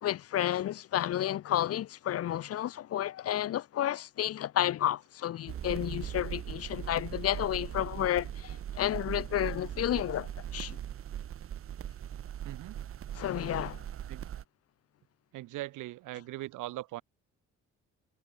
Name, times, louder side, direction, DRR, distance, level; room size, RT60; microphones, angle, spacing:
voice 1, 0.0-10.8 13.1-13.8, left 12 dB, 55° left, 0.6 m, -31 dB
sound 1, 5.5-14.4, right 10 dB, 45° right, 0.7 m, -40 dB
voice 2, 12.4-12.8 14.1-14.2 15.3-17.0, right 17 dB, 85° right, 0.9 m, -40 dB
cardioid pair, 90°, 30 cm